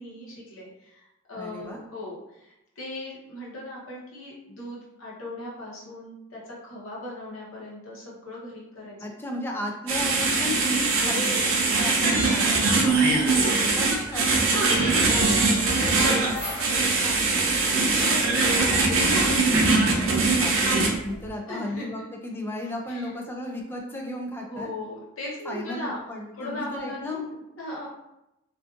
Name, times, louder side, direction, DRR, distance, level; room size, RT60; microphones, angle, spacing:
voice 1, 0.0-9.2 10.9-11.6 13.0-13.4 15.0-19.2 19.7-20.1 21.5-21.9 22.9-23.1 24.5-26.0 26.3-27.9, left 1 dB, 85° left, -5 dB, 0.9 m, -38 dB
voice 2, 1.4-1.8 9.0-15.3 16.1-16.4 20.2-20.8 21.0-24.7 25.5-27.3, left 1 dB, 10° left, 1 dB, 0.3 m, -35 dB
sound 1, 9.9-20.9, right 3 dB, 75° right, 0.5 m, -22 dB
sound 2, 13.8-21.3, equal, 5° right, 1.2 m, -42 dB
2.5 x 2.4 x 2.4 m, 0.89 s
head